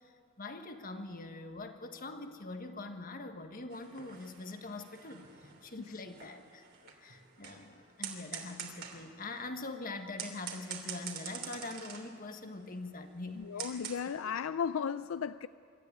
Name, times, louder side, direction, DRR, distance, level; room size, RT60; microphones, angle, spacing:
voice 1, 0.4-6.6 7.0-13.8 14.2-14.3, left 2 dB, 45° left, 1.5 m, -43 dB
sound 1, 3.7-14.0, right 7 dB, 50° right, 2.9 m, -46 dB
voice 2, 13.4-15.5, left 7 dB, 85° left, 0.4 m, -35 dB
24.5 x 13.0 x 9.3 m
head